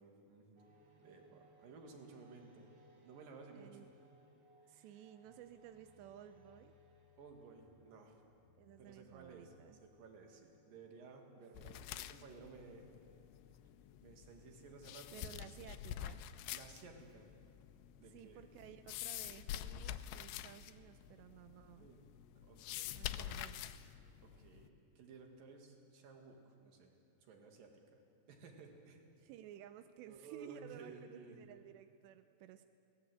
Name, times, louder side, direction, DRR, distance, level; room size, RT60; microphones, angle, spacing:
voice 1, 0.0-2.7 3.0-3.9 4.6-5.1 7.2-8.2 8.8-9.5 9.8-12.9 14.0-15.4 15.6-15.8 16.5-17.3 18.0-18.4 21.8-22.0 22.4-23.3 24.2-26.9 27.2-28.0 28.3-29.1 30.1-31.4, right 4 dB, 60° right, 2 dB, 3.6 m, -56 dB
sound 1, 0.6-14.9, equal, 35° right, 2.3 m, -68 dB
voice 2, 3.5-3.9 4.7-6.7 8.6-9.8 15.1-16.4 18.1-21.9 22.9-23.8 29.2-32.7, right 12 dB, 90° right, 9 dB, 2.9 m, -55 dB
sound 2, 5.2-10.6, left 5 dB, 45° left, 2.0 m, -71 dB
sound 3, 11.5-24.7, left 11 dB, 85° left, 2.8 m, -47 dB
22.0 x 18.5 x 8.0 m, 2.6 s
omnidirectional pair, 4.9 m